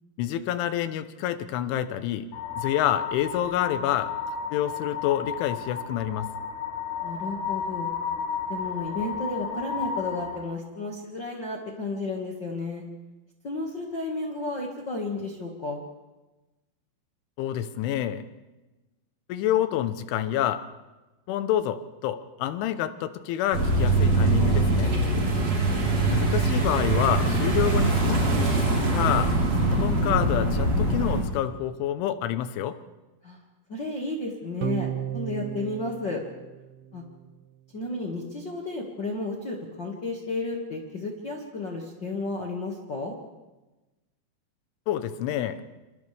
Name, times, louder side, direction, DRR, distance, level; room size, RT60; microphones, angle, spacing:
voice 1, 0.2-2.3 2.6-4.1 4.5-6.3 17.4-18.2 19.3-20.6 21.3-24.9 26.1-28.6 28.9-32.8 44.9-45.6, left 11 dB, 85° left, 11 dB, 3.4 m, -28 dB
sound 1, 2.3-10.4, left 6 dB, 45° left, 5.1 m, -33 dB
voice 2, 7.0-7.9 8.5-12.8 13.4-15.8 25.2-25.9 33.2-33.4 33.7-36.2 36.9-37.0 37.7-43.1, left 2 dB, 65° left, -1 dB, 1.1 m, -33 dB
sound 2, 23.5-31.2, right 2 dB, 35° right, 4.7 m, -23 dB
sound 3, 34.6-37.2, right 11 dB, 75° right, 2.3 m, -34 dB
28.0 x 27.0 x 3.4 m, 1.1 s
omnidirectional pair, 5.4 m